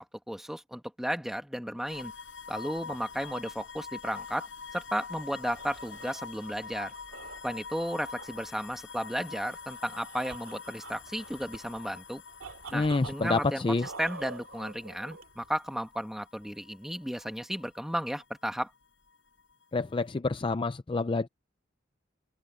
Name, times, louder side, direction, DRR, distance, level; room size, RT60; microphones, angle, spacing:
voice 1, 0.0-2.1 2.5-4.5 4.7-6.9 7.4-12.2 12.7-18.7, equal, ahead, 1.5 m, -34 dB
sound 1, 1.9-18.8 19.1-20.1, left 5 dB, 65° left, 7.7 m, -46 dB
sound 2, 5.2-15.6, right 4 dB, 90° right, 2.6 m, -47 dB
voice 2, 12.7-13.9 19.7-21.3, left 3 dB, 25° left, 0.4 m, -28 dB
open air
head